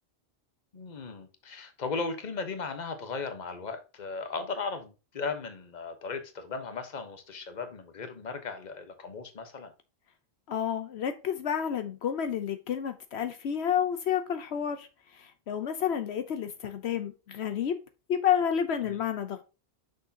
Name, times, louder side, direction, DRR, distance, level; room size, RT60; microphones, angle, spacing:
voice 1, 0.7-9.7 18.8-19.0, left 4 dB, 45° left, 1.1 m, -37 dB
voice 2, 10.5-17.8 18.1-19.4, left 8 dB, 80° left, 1.0 m, -30 dB
6.4 x 6.3 x 2.8 m
omnidirectional pair, 1.1 m